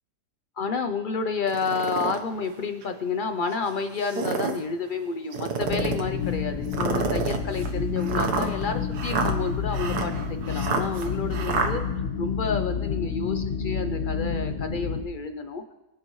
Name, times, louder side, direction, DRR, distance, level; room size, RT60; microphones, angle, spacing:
voice 1, 0.6-10.1 10.5-11.8 12.2-15.6, left 4 dB, 70° left, 8 dB, 0.4 m, -30 dB
sound 1, 1.5-2.2 2.8-2.9 3.9-4.6 5.3-6.1 6.7-11.7, right 5 dB, 70° right, 1.6 m, -29 dB
sound 2, 5.6-15.0, left 6 dB, 55° left, 1.6 m, -29 dB
23.5 x 8.3 x 3.1 m, 1.0 s
omnidirectional pair, 1.8 m